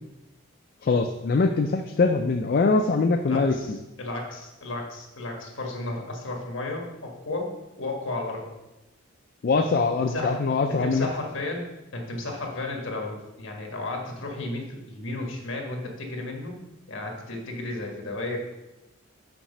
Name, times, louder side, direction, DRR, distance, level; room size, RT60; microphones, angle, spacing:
voice 1, 0.8-3.8 9.4-11.1, left 4 dB, 45° left, 5 dB, 0.4 m, -23 dB
voice 2, 3.2-8.5 10.0-10.4 10.8-11.6 11.9-16.5 16.9-18.4, left 2 dB, 60° left, 1 dB, 1.5 m, -33 dB
5.9 x 4.9 x 5.4 m, 1.0 s
head